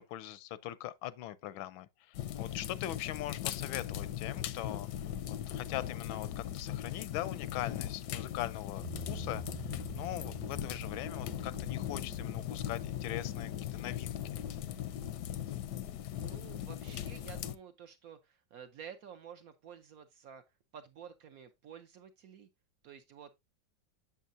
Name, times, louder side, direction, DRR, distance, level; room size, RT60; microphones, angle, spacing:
voice 1, 0.0-4.9 5.5-9.4 9.9-14.2, left 13 dB, 90° left, 1.4 m, -41 dB
sound 1, 2.1-17.5, left 11 dB, 75° left, 1.0 m, -39 dB
Bass guitar, 8.8-15.1, right 6 dB, 90° right, 1.4 m, -49 dB
voice 2, 16.1-20.4 20.7-22.5 22.8-23.3, right 8 dB, 70° right, 0.8 m, -51 dB
7.3 x 6.9 x 2.5 m
omnidirectional pair, 2.1 m